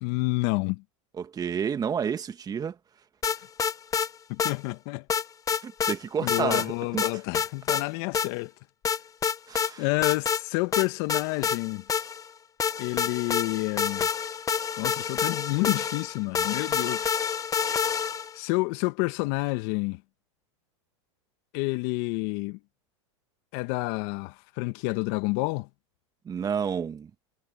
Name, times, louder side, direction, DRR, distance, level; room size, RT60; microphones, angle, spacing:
voice 1, 0.0-0.8 4.3-5.1 6.2-8.5 9.8-11.8 12.8-14.1 14.8-17.2 18.3-20.0 21.5-22.6 23.5-25.7, left 24 dB, 55° left, 1.3 m, -29 dB
voice 2, 1.2-2.8 5.6-7.1 9.5-9.8 26.3-27.1, right 7 dB, 25° right, 1.8 m, -30 dB
sound 1, 3.2-4.1 4.4-4.5 5.1-6.0 6.3-6.7 7.0-7.8 8.1-8.3 8.8-9.7 10.0-10.4 10.7-12.3 12.6-18.4, left 7 dB, 20° left, 0.9 m, -27 dB
hypercardioid pair, 115°, 16 cm